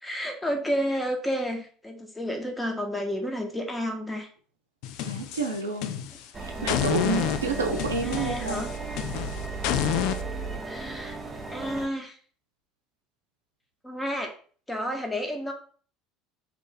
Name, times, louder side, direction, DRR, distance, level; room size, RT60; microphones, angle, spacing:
voice 1, 0.0-4.3 6.6-6.8 8.0-8.7 10.7-11.2 11.5-12.2 13.8-14.3 14.7-15.5, equal, 10° left, 3 dB, 0.9 m, -31 dB
sound 1, 4.8-6.3 6.7-10.2, left 10 dB, 60° left, 0.3 m, -29 dB
voice 2, 5.1-5.9 6.6-8.6, right 4 dB, 85° right, 4 dB, 0.5 m, -29 dB
sound 2, 6.3-11.9, right 4 dB, 20° right, 0.7 m, -35 dB
2.9 x 2.5 x 3.8 m, 0.44 s
hypercardioid pair, 70°, 0 cm